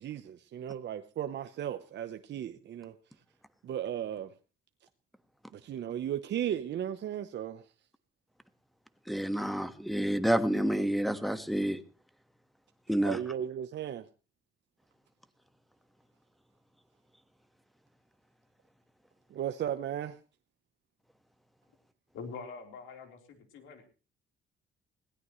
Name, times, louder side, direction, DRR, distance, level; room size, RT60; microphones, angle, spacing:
voice 1, 0.0-2.9 3.6-4.3 5.5-7.6 13.0-14.1 19.3-20.2, right 10 dB, 60° right, 0.9 m, -35 dB
voice 2, 9.1-11.8 12.9-13.2, right 1 dB, ahead, 1.4 m, -29 dB
voice 3, 22.1-23.8, left 5 dB, 85° left, 3.9 m, -44 dB
21.0 x 16.5 x 3.1 m
cardioid pair, 90°, 20 cm